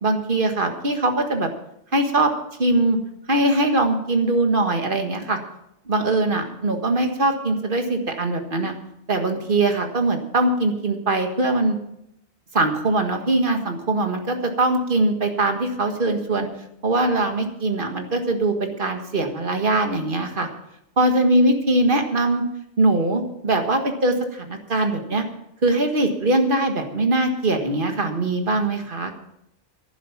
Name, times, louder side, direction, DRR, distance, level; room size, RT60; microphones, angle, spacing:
voice 1, 0.0-1.5 1.9-2.3 2.6-3.0 3.3-5.4 5.9-8.7 9.1-11.8 12.5-16.5 16.8-20.5 21.0-22.4 22.8-25.2 25.6-29.1, right 2 dB, 40° right, 4 dB, 1.8 m, -21 dB
11.5 x 11.0 x 5.9 m, 0.81 s
omnidirectional pair, 1.4 m